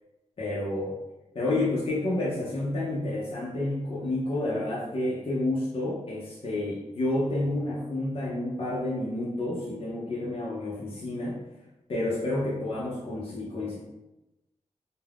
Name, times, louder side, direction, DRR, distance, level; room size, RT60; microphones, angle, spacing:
voice 1, 0.4-1.0 1.3-11.4 11.9-13.8, left 2 dB, 50° left, -7 dB, 0.6 m, -30 dB
2.3 x 2.1 x 3.3 m, 1.0 s
wide cardioid pair, 125°, 12 cm